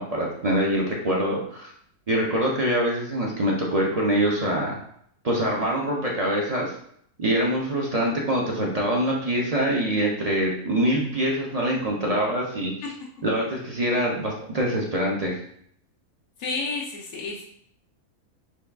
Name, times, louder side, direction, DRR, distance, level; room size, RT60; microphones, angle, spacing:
voice 1, 0.0-1.7 2.1-4.8 5.2-6.7 7.2-12.7 13.2-15.4, right 1 dB, 45° right, -2 dB, 0.5 m, -24 dB
voice 2, 16.4-17.4, left 3 dB, 85° left, -4 dB, 1.2 m, -30 dB
6.1 x 2.4 x 3.4 m, 0.67 s
omnidirectional pair, 1.5 m